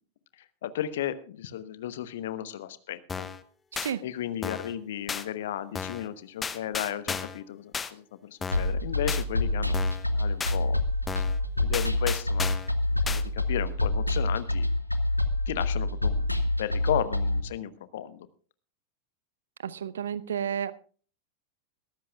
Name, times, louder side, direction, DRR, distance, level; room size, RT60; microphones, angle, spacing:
voice 1, 0.6-3.3 4.0-9.8 10.1-10.8 11.1-11.2 11.6-12.5 13.1-14.7 15.5-16.3 16.6-18.3, left 10 dB, 55° left, 1.0 m, -34 dB
sound 1, 3.1-3.4 3.8-3.9 4.4-4.7 5.1-5.2 5.7-6.1 6.4-7.4 7.7-7.9 8.4-8.7 9.1-9.2 9.7-10.1 10.4-10.6 11.1-11.4 11.7-12.7 13.1-13.2, left 5 dB, 15° left, 0.9 m, -33 dB
sound 2, 8.5-17.4, left 2 dB, 90° left, 1.0 m, -27 dB
voice 2, 19.6-20.7, right 8 dB, 65° right, 0.7 m, -31 dB
22.5 x 13.5 x 2.3 m
figure-of-eight pair, 90°, 0 cm